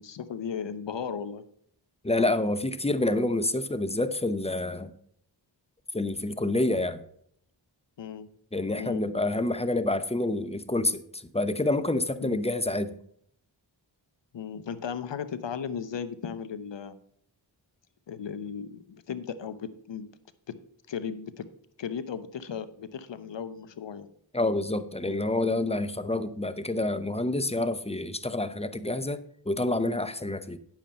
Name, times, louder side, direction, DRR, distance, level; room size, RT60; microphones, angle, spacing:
voice 1, 0.0-1.4 2.1-2.3 8.0-8.3 8.8-9.0 12.2-12.4 14.3-17.0 18.1-20.1 20.5-20.6 20.9-21.5 21.8-24.1 25.1-25.2, left 7 dB, 70° left, 13 dB, 0.9 m, -36 dB
voice 2, 2.0-4.9 5.9-7.0 8.5-12.9 24.3-30.6, left 2 dB, 15° left, 12 dB, 0.7 m, -28 dB
9.1 x 7.6 x 4.2 m, 0.66 s
cardioid pair, 55°, 46 cm